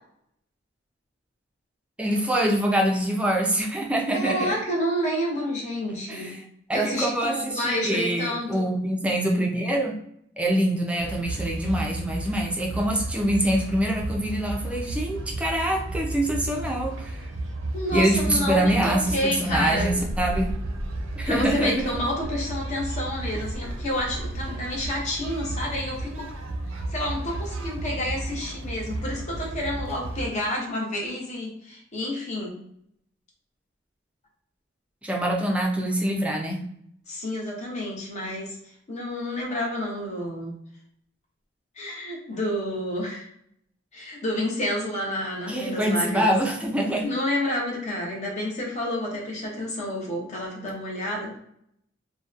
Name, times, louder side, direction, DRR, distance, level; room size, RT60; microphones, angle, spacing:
voice 1, 2.0-4.5 6.1-6.4 6.7-10.0 10.4-17.2 17.9-20.5 21.2-21.9 35.0-36.6 45.5-47.1, right 1 dB, 5° right, 0 dB, 0.4 m, -25 dB
voice 2, 4.1-6.4 6.7-8.7 17.7-20.1 21.3-26.3 26.9-32.6 37.1-38.6 38.9-40.5 41.8-43.3 43.9-46.3 47.0-51.3, left 1 dB, 35° left, -2 dB, 0.7 m, -29 dB
sound 1, 11.0-30.3, right 2 dB, 80° right, 0.5 m, -33 dB
2.7 x 2.1 x 2.4 m, 0.72 s
head